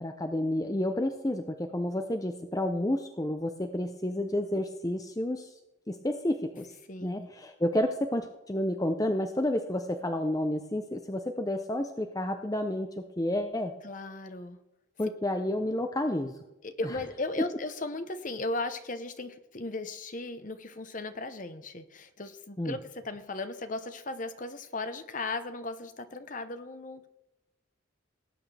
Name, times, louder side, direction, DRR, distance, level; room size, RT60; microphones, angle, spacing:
voice 1, 0.0-5.5 5.9-6.7 7.0-13.7 15.0-16.3 22.6-22.7, left 1 dB, 15° left, 6 dB, 0.6 m, -30 dB
voice 2, 6.9-7.3 13.8-14.6 16.6-27.1, left 2 dB, 40° left, 10 dB, 0.9 m, -36 dB
18.5 x 8.6 x 3.4 m, 0.93 s
head